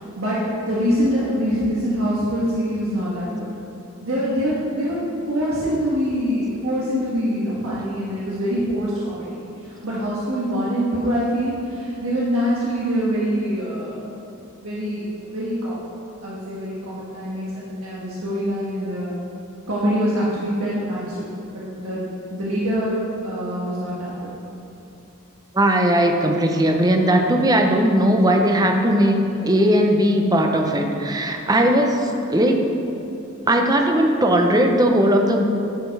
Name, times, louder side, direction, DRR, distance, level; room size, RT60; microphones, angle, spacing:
voice 1, 0.2-3.5 4.0-14.0 14.6-15.0 15.3-15.8 16.2-19.2 19.7-21.3 21.5-24.1, equal, 85° right, -7 dB, 1.4 m, -24 dB
voice 2, 25.5-32.7 33.5-35.4, right 1 dB, 20° right, 3 dB, 0.7 m, -18 dB
10.5 x 5.1 x 4.7 m, 3.0 s
head